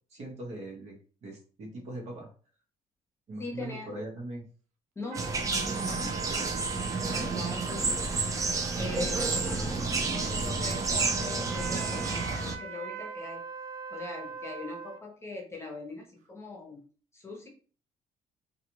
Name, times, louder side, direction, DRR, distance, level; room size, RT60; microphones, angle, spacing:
voice 1, 0.1-2.3 3.3-4.5 7.0-7.3, right 1 dB, 55° right, -1 dB, 1.0 m, -40 dB
voice 2, 3.4-3.9 5.0-5.3 5.7-6.2 7.1-8.0 8.8-13.4 13.9-16.8 17.1-17.5, left 3 dB, 20° left, -1 dB, 0.9 m, -42 dB
sound 1, 5.1-12.6, right 3 dB, 25° right, 0.5 m, -30 dB
sound 2, 5.1-15.0, right 6 dB, 75° right, 0.5 m, -41 dB
2.4 x 2.3 x 2.9 m, 0.39 s
cardioid pair, 110°, 14 cm